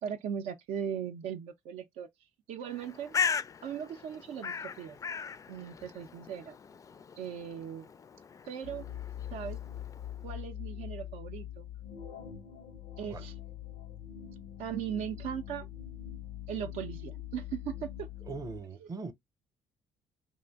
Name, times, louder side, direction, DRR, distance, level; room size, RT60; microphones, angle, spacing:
voice 1, 0.0-2.1 2.5-3.1 3.6-5.0 5.5-6.5 7.2-7.9 8.4-8.9 9.3-9.6 10.2-11.7 13.0-13.3 14.6-15.7 16.5-18.1 18.8-18.9, right 8 dB, 75° right, 0.5 m, -38 dB
Bird, 2.7-10.3, left 6 dB, 30° left, 0.3 m, -38 dB
sound 1, 8.6-18.6, left 11 dB, 85° left, 0.6 m, -43 dB
voice 2, 18.2-19.1, right 4 dB, 35° right, 0.7 m, -40 dB
2.5 x 2.0 x 3.4 m
supercardioid pair, 60°, 11 cm